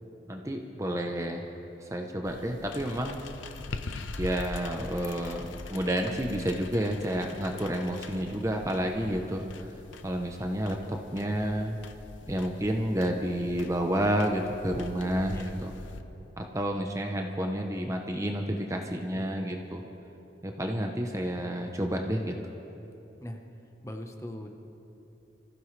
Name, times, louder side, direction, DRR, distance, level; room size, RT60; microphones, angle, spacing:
voice 1, 0.3-1.5 1.8-3.2 4.2-9.4 10.0-11.8 12.3-15.7 16.4-19.8 20.4-22.4, equal, 15° right, 3 dB, 0.7 m, -30 dB
sound 1, 2.2-16.0, left 3 dB, 85° left, 0.7 m, -43 dB
voice 2, 19.1-19.9 23.2-23.4 23.8-24.5, left 1 dB, 15° left, 3 dB, 0.9 m, -41 dB
25.0 x 15.0 x 3.3 m, 2.9 s
head